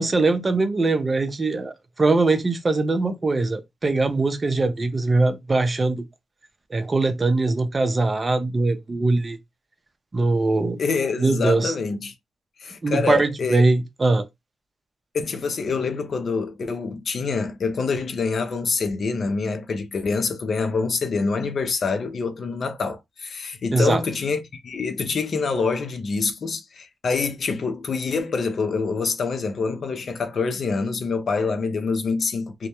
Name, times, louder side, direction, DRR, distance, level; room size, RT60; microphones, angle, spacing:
voice 1, 0.0-6.0 6.7-9.4 10.1-10.8 11.2-11.7 12.8-14.3 23.7-24.0, right 3 dB, 40° right, 0.5 m, -21 dB
voice 2, 10.8-12.1 12.6-13.6 15.1-32.7, left 4 dB, 65° left, 0.5 m, -26 dB
2.1 x 2.1 x 2.8 m
supercardioid pair, 50°, 0 cm